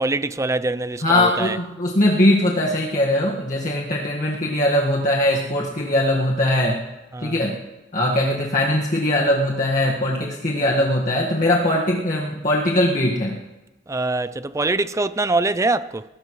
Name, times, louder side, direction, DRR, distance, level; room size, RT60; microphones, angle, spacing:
voice 1, 0.0-1.6 7.1-7.4 13.9-16.0, right 2 dB, 15° right, 0.4 m, -23 dB
voice 2, 1.0-6.8 7.2-7.6 7.9-13.4, left 1 dB, 45° left, 1.7 m, -20 dB
20.5 x 20.0 x 3.2 m
head